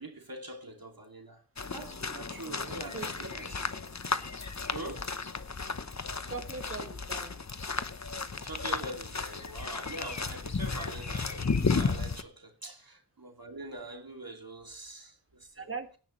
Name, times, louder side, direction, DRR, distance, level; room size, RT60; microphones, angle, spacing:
voice 1, 0.0-1.4 1.7-3.6 4.7-5.1 8.4-15.7, right 2 dB, 50° right, 2.7 m, -43 dB
sound 1, 1.6-12.2, left 4 dB, 40° left, 1.0 m, -34 dB
voice 2, 2.9-3.3 6.2-7.4 12.6-12.7 15.6-16.0, right 4 dB, 30° right, 2.1 m, -40 dB
17.0 x 10.5 x 3.2 m
wide cardioid pair, 55°, 44 cm